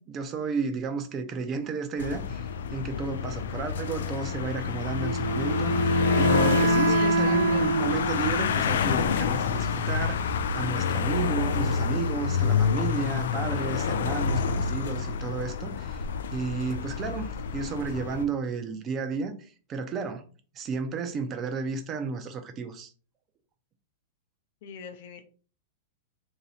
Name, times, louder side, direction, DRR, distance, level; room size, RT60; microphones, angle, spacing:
voice 1, 0.0-10.2 10.5-16.0 16.3-20.2 20.5-22.9, right 5 dB, 20° right, 0.5 m, -32 dB
sound 1, 2.0-18.3, left 7 dB, 85° left, 0.3 m, -28 dB
Wind instrument woodwind instrument, 5.0-8.6, right 3 dB, 90° right, 0.7 m, -26 dB
voice 2, 6.8-7.7 24.6-25.3, left 7 dB, 55° left, 0.7 m, -40 dB
2.9 x 2.7 x 4.2 m
supercardioid pair, 160°, 0 cm